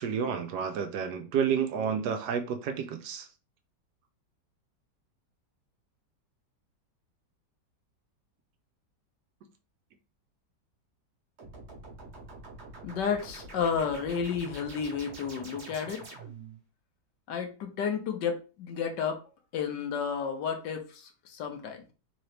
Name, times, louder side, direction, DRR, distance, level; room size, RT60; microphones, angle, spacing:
voice 1, 0.0-3.3, right 7 dB, 70° right, 1.1 m, -30 dB
sound 1, 11.4-16.6, right 2 dB, 45° right, 1.2 m, -46 dB
voice 2, 12.8-16.0 17.3-19.2 19.5-21.9, left 6 dB, 80° left, 1.5 m, -32 dB
3.9 x 2.9 x 3.2 m
omnidirectional pair, 1.9 m